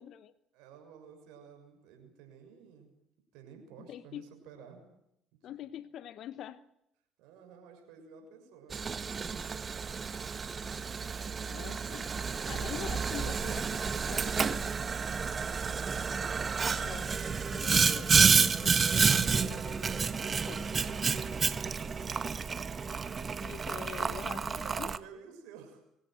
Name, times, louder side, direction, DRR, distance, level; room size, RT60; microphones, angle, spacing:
voice 1, 0.0-0.3 3.9-4.3 5.4-6.6 11.4-12.1 12.4-14.7 16.8-19.7 20.5-20.7 23.4-24.9, left 11 dB, 65° left, 1.1 m, -45 dB
voice 2, 0.5-2.9 3.3-4.9 7.2-10.3 15.1-16.0 19.2-22.2 22.9-23.4 23.9-25.9, right 6 dB, 75° right, 6.8 m, -53 dB
Boiling, 8.7-25.0, right 5 dB, 40° right, 1.4 m, -30 dB
23.0 x 17.5 x 9.2 m
hypercardioid pair, 65°, 0 cm